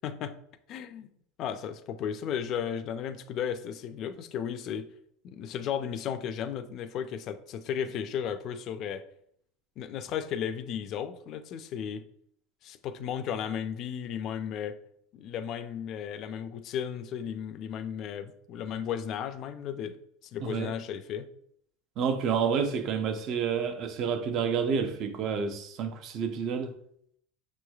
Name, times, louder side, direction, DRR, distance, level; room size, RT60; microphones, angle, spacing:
voice 1, 0.0-0.3 0.7-1.1 1.4-4.9 5.2-9.0 9.8-12.0 12.6-14.8 15.1-20.0 20.2-21.3, left 8 dB, 45° left, 0.4 m, -34 dB
voice 2, 20.4-20.7 22.0-26.7, right 6 dB, 45° right, 0.6 m, -29 dB
6.1 x 3.1 x 2.3 m
supercardioid pair, 125°, 0 cm